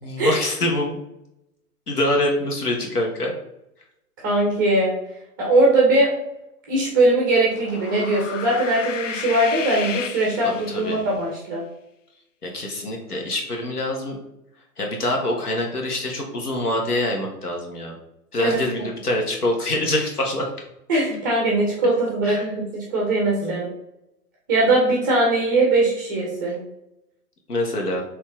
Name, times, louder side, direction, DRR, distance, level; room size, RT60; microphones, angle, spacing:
voice 1, 0.0-1.0 1.9-3.3 10.4-11.0 12.4-14.2 14.8-18.0 18.3-20.5 22.2-22.4 23.4-23.6 27.5-28.0, left 1 dB, 75° left, 0 dB, 1.4 m, -25 dB
voice 2, 4.2-4.9 5.4-6.1 6.7-11.6 18.4-18.6 20.9-23.7 24.5-26.6, right 2 dB, 15° right, -3 dB, 0.5 m, -20 dB
sound 1, 7.4-11.1, left 7 dB, 55° left, 0.5 m, -33 dB
4.2 x 3.1 x 3.7 m, 0.85 s
figure-of-eight pair, 120°, 46 cm